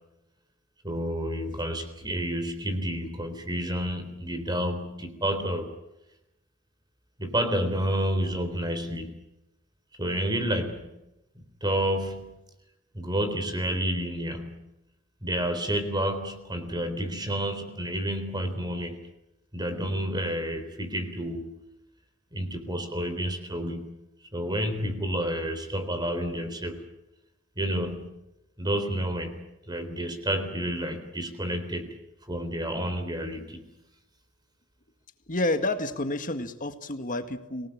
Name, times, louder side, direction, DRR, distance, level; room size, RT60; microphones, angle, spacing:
voice 1, 0.8-5.7 7.2-9.2 10.0-11.0 11.4-12.3 12.9-14.6 15.2-19.1 19.5-21.6 22.3-23.9 24.3-26.8 27.6-28.2 28.6-31.9 32.3-33.7, right 1 dB, 20° right, 7 dB, 3.8 m, -30 dB
voice 2, 35.3-37.7, left 2 dB, 40° left, 8 dB, 1.9 m, -29 dB
26.0 x 18.5 x 8.7 m, 0.92 s
head